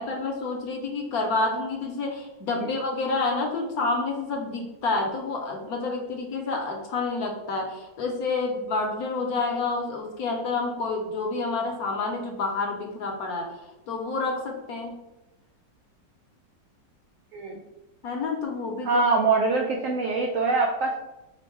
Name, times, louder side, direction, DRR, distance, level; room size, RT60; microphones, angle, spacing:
voice 1, 0.0-13.6 13.9-15.0 18.0-19.0, left 3 dB, 65° left, 2 dB, 1.0 m, -29 dB
voice 2, 18.8-21.0, right 4 dB, 85° right, 1 dB, 0.7 m, -24 dB
5.2 x 2.1 x 4.5 m, 1.0 s
omnidirectional pair, 2.0 m